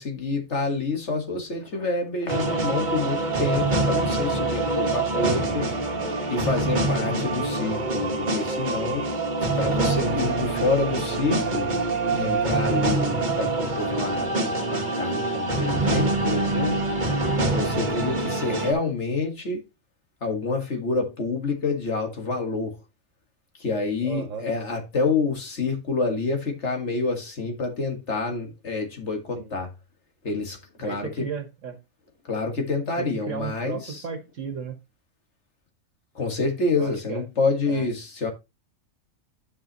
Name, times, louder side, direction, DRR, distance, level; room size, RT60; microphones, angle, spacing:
voice 1, 0.0-5.7 6.3-9.1 9.6-11.7 12.1-16.8 17.5-19.6 20.2-22.8 23.6-29.7 30.2-31.3 32.3-34.0 36.2-38.3, left 3 dB, 55° left, 2.0 m, -28 dB
sound 1, 2.3-18.7, right 2 dB, 35° right, 1.6 m, -25 dB
voice 2, 24.0-24.5 29.4-29.5 30.8-31.8 33.0-34.8 36.8-37.2 37.7-37.9, right 6 dB, 65° right, 1.5 m, -34 dB
11.0 x 5.7 x 2.9 m
omnidirectional pair, 1.4 m